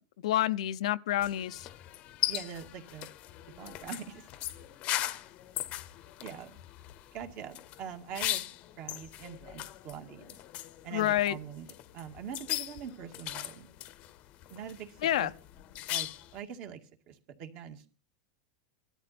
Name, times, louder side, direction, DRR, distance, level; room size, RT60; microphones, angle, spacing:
voice 1, 0.2-1.7 10.9-11.4 15.0-15.3, left 13 dB, 80° left, 0.7 m, -28 dB
sound 1, 1.2-16.4, left 15 dB, 40° left, 0.9 m, -39 dB
voice 2, 2.3-3.1 3.6-4.2 6.2-6.6 7.1-8.4 8.8-10.4 10.8-11.7 11.9-13.7 14.5-15.3 15.9-16.8 17.1-17.9, right 8 dB, 40° right, 2.1 m, -43 dB
18.0 x 12.5 x 4.3 m
supercardioid pair, 150°, 3 cm